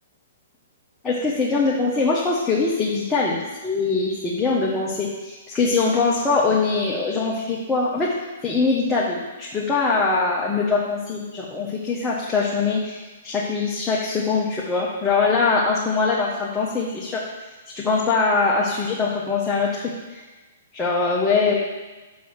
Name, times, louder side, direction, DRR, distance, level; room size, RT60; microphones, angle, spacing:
voice 1, 1.0-3.4 3.6-8.1 8.4-17.2 17.7-19.8 20.1-20.2 20.7-21.6, left 4 dB, 15° left, -5 dB, 1.2 m, -22 dB
6.3 x 5.5 x 6.4 m, 1.2 s
figure-of-eight pair, 115°, 0 cm